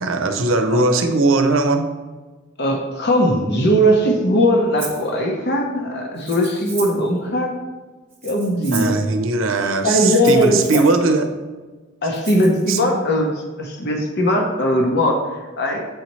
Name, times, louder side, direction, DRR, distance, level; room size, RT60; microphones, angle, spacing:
voice 1, 0.0-1.9 8.7-11.3 12.7-12.8, right 3 dB, 80° right, 6 dB, 0.6 m, -19 dB
voice 2, 2.6-7.5 8.2-8.9 9.8-10.8 12.0-15.8, equal, 55° left, 2 dB, 0.9 m, -19 dB
Rattle (instrument), 4.8-5.0 6.2-7.1 8.1-9.0 10.1-11.0 12.1-12.8, right 4 dB, 10° right, 1.0 m, -34 dB
8.0 x 4.1 x 3.1 m, 1.3 s
head